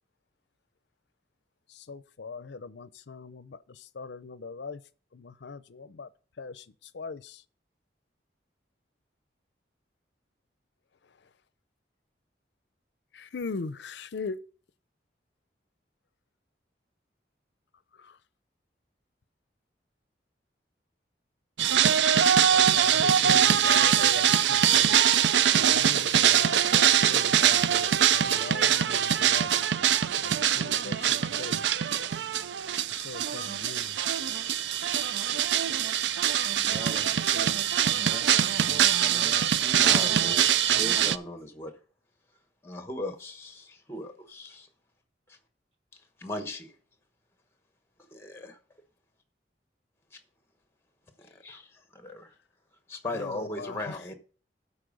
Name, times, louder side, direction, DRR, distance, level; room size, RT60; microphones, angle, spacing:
voice 1, 1.8-3.6 4.0-4.8 5.1-6.1 6.4-6.6 6.9-7.4 13.1-14.4 22.5-25.0 25.5-29.7 30.2-31.6 32.9-34.0 53.1-54.0, left 4 dB, 75° left, 0.5 m, -40 dB
sound 1, 21.6-41.2, right 9 dB, 80° right, 0.4 m, -23 dB
voice 2, 36.6-40.3, right 1 dB, 35° right, 1.3 m, -44 dB
voice 3, 39.8-40.5 40.8-41.7 42.6-44.7 46.2-46.7 48.1-48.6 51.2-51.7 51.9-52.3 52.9-54.1, left 2 dB, 15° left, 1.1 m, -37 dB
12.5 x 4.3 x 5.2 m
head